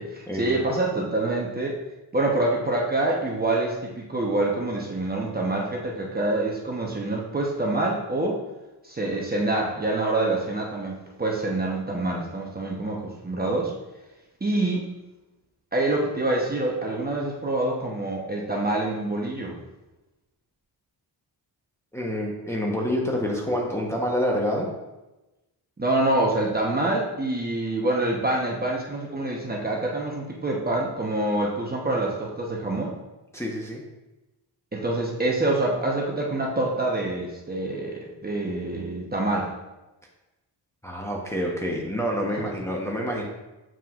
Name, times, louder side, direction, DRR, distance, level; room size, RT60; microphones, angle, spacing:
voice 1, 0.0-1.8 2.1-8.4 8.8-13.7 14.4-14.9 15.7-19.6 25.8-33.0 34.7-39.5, right 2 dB, 20° right, -2 dB, 1.0 m, -26 dB
voice 2, 21.9-24.7 33.3-33.8 40.8-43.2, equal, 5° left, -3 dB, 1.0 m, -27 dB
7.4 x 5.5 x 2.5 m, 1.0 s
cardioid pair, 95°, 43 cm